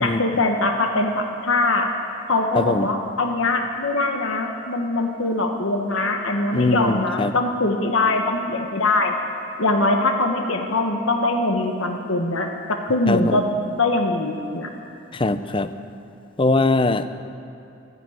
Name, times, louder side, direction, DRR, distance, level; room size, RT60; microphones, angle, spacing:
voice 1, 0.0-1.9 2.3-9.1 9.6-13.4 13.8-14.7, left 2 dB, 75° left, 3 dB, 1.2 m, -22 dB
voice 2, 2.5-2.9 6.5-7.3 13.1-13.4 15.1-15.7 16.4-17.1, left 2 dB, 25° left, 12 dB, 0.5 m, -21 dB
12.5 x 11.0 x 9.4 m, 2.8 s
head